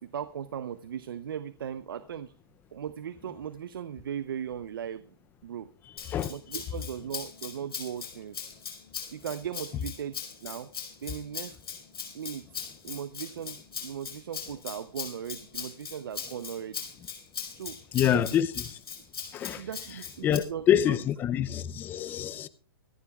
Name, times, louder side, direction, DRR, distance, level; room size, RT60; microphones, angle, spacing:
voice 1, 0.0-2.3 2.7-5.1 5.4-5.7 6.3-8.4 9.1-10.7 11.0-11.6 12.1-16.9 17.5-18.4 19.5-21.0, right 9 dB, 65° right, 0.8 m, -38 dB
Rattle (instrument), 6.0-20.4, left 6 dB, 80° left, 4.6 m, -40 dB
voice 2, 17.9-18.5 19.3-19.7 20.2-22.5, left 10 dB, 15° left, 0.5 m, -26 dB
24.5 x 9.9 x 2.4 m
hypercardioid pair, 145°, 12 cm